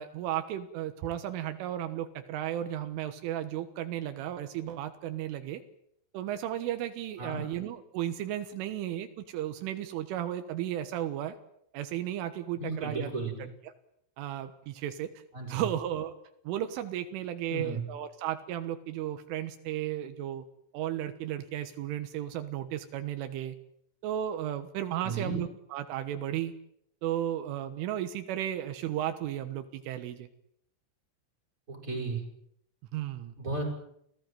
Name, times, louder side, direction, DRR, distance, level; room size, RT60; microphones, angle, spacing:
voice 1, 0.0-5.6 6.1-11.4 11.7-13.1 14.2-15.1 15.5-16.1 16.5-20.4 20.7-23.6 24.0-26.5 27.0-30.3 32.9-33.3, right 11 dB, 85° right, 9 dB, 3.8 m, -34 dB
voice 2, 12.6-13.4 15.3-15.7 17.5-17.8 25.0-25.4 31.7-32.2 33.4-33.6, right 3 dB, 15° right, 1 dB, 7.5 m, -34 dB
29.5 x 17.5 x 9.2 m, 0.75 s
omnidirectional pair, 5.6 m